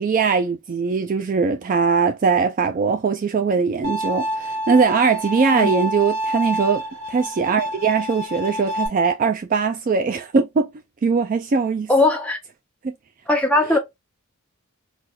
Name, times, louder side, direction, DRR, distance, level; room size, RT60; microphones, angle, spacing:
voice 1, 0.0-6.8 7.1-10.7 11.0-11.9 12.8-12.9 13.7-13.8, right 5 dB, 40° right, 0.3 m, -20 dB
Bowed string instrument, 3.8-8.9, equal, 70° right, 1.9 m, -28 dB
voice 2, 11.9-12.4 13.3-13.8, left 2 dB, 5° left, 0.7 m, -18 dB
4.1 x 2.4 x 2.3 m
head